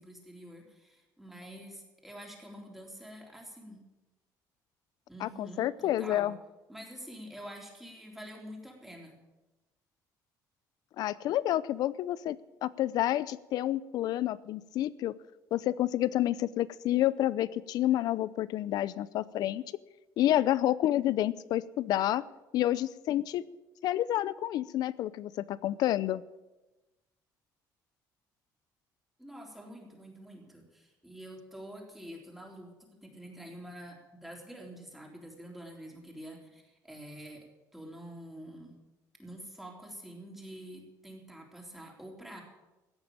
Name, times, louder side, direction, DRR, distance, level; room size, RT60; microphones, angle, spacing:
voice 1, 0.0-3.8 5.1-6.3 6.7-9.2 29.2-37.5 37.7-38.7 39.2-42.4, equal, 5° right, 0 dB, 3.7 m, -47 dB
voice 2, 5.2-6.4 11.0-15.1 15.5-19.6 20.2-22.2 22.5-23.4 23.8-26.2, left 13 dB, 70° left, 19 dB, 0.6 m, -29 dB
15.5 x 8.8 x 8.9 m, 1.1 s
cardioid pair, 125°, 7 cm